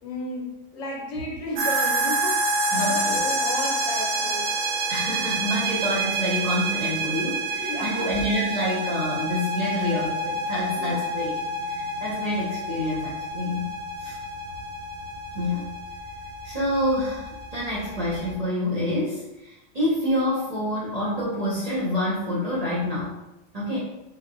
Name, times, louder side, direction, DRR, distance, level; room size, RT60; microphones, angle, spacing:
voice 1, 0.0-2.4 2.7-4.5 7.6-8.1 10.8-11.0, left 1 dB, 75° left, -2 dB, 1.2 m, -33 dB
sound 1, 1.6-18.3, right 2 dB, 85° right, 1.0 m, -28 dB
voice 2, 2.7-3.2 4.9-11.3 11.7-13.7 14.0-14.2 15.3-15.7 16.4-23.2 23.5-23.8, left 1 dB, 40° right, -7 dB, 0.7 m, -27 dB
3.8 x 2.1 x 2.5 m, 0.91 s
omnidirectional pair, 1.4 m